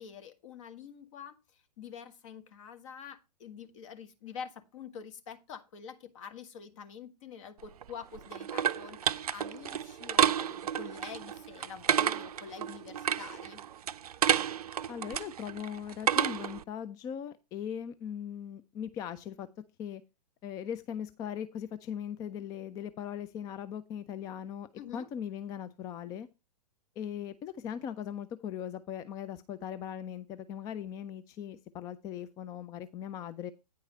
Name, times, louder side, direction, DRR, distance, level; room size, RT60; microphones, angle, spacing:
voice 1, 0.0-13.6 24.8-25.1, left 6 dB, 50° left, 1.5 m, -46 dB
sound 1, 7.6-16.6, right 9 dB, 65° right, 0.5 m, -31 dB
voice 2, 14.9-19.5 19.8-20.0 20.4-26.3 27.0-33.5, left 9 dB, 15° left, 0.4 m, -39 dB
9.4 x 4.7 x 5.5 m
figure-of-eight pair, 115°, 21 cm